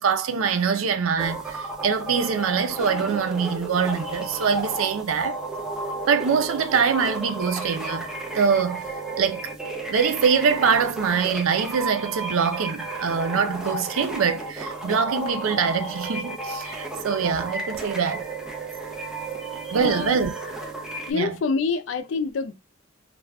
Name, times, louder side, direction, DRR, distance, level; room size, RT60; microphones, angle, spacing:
voice 1, 0.0-5.4 6.1-8.1 8.3-8.9 9.2-9.4 9.9-18.3 19.7-20.3 21.1-21.4, right 6 dB, 90° right, 0.4 m, -24 dB
sound 1, 1.2-21.1, right 2 dB, 5° right, 0.6 m, -33 dB
voice 2, 19.7-20.2 21.1-22.5, left 4 dB, 70° left, 0.4 m, -26 dB
2.4 x 2.2 x 3.3 m
head